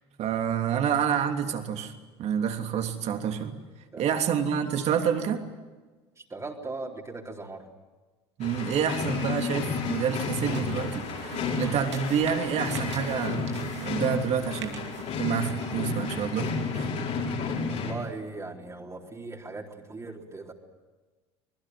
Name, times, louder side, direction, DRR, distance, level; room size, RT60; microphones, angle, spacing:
voice 1, 0.2-1.9 2.2-3.6 4.0-5.4 8.4-14.8 15.2-16.9, right 8 dB, 50° right, 5 dB, 3.1 m, -28 dB
voice 2, 6.2-7.7 17.6-20.5, right 3 dB, 20° right, 0 dB, 4.0 m, -39 dB
sound 1, 8.4-17.9, left 4 dB, 55° left, 6.8 m, -31 dB
sound 2, 9.8-16.9, right 6 dB, 85° right, 2.7 m, -43 dB
25.5 x 21.0 x 9.5 m, 1.3 s
hypercardioid pair, 70°, 14 cm